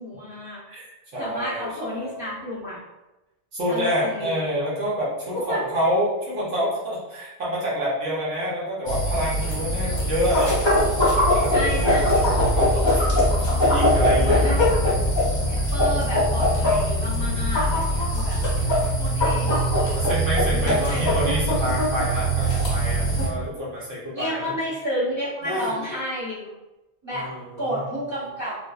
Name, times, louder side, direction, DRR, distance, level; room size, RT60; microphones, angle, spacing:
voice 1, 0.0-0.6 1.2-2.8 3.7-4.3 5.3-5.7 9.8-9.9 11.5-12.2 13.7-14.8 15.5-18.4 19.0-19.7 20.5-21.1 24.1-26.5 27.0-27.3 27.6-28.6, equal, 25° right, -10 dB, 0.9 m, -31 dB
voice 2, 0.7-2.3 3.5-10.5 10.9-13.1 13.7-14.7 19.9-24.5 25.4-25.7 27.1-27.4 27.7-27.9, equal, 75° right, -7 dB, 1.1 m, -27 dB
sound 1, 8.9-23.3, equal, 35° left, 0.5 m, -21 dB
2.9 x 2.1 x 2.3 m, 1.0 s
omnidirectional pair, 1.3 m